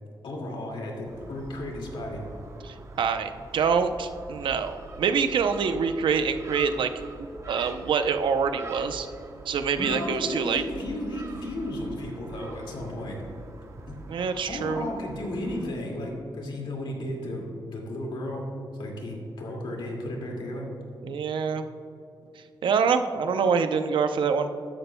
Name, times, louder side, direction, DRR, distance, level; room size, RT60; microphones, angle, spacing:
voice 1, 0.2-2.2 9.8-13.3 13.9-14.0 14.5-18.5 18.8-20.7, left 1 dB, 75° left, 0 dB, 2.1 m, -34 dB
Gull seagull, 1.1-15.7, right 3 dB, 35° right, 0.8 m, -44 dB
voice 2, 2.6-6.9 7.2-9.1 9.5-10.6 14.1-14.9 21.0-21.6 22.6-24.7, right 6 dB, 80° right, 8 dB, 0.6 m, -26 dB
13.5 x 11.0 x 2.2 m, 2.8 s
wide cardioid pair, 165°, 8 cm